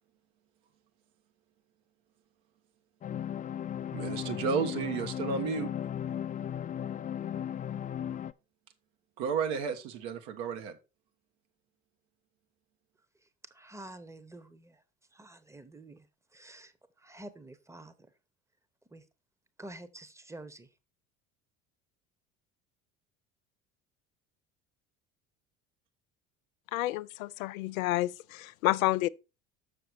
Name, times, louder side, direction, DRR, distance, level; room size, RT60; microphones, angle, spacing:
sound 1, 3.0-8.3, left 9 dB, 20° left, 0.4 m, -36 dB
voice 1, 3.9-5.7 9.2-10.8, right 6 dB, 65° right, 1.5 m, -32 dB
voice 2, 13.2-14.8 15.1-16.1 16.3-18.1 18.9-19.0 19.6-20.7, right 2 dB, 5° right, 1.1 m, -49 dB
voice 3, 26.7-29.1, left 17 dB, 75° left, 0.5 m, -29 dB
6.7 x 6.7 x 4.5 m
hypercardioid pair, 65°, 41 cm